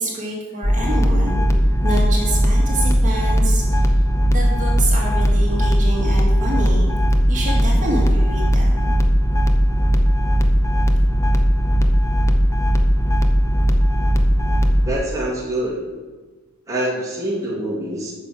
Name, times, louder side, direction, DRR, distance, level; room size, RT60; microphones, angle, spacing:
voice 1, 0.0-3.9 4.3-6.9 7.3-8.7, right 1 dB, 35° right, -3 dB, 2.2 m, -27 dB
sound 1, 0.6-14.9, equal, 15° left, 0.7 m, -17 dB
voice 2, 14.8-15.8 16.7-18.1, right 1 dB, 15° right, -5 dB, 2.3 m, -25 dB
8.7 x 6.3 x 7.7 m, 1.3 s
head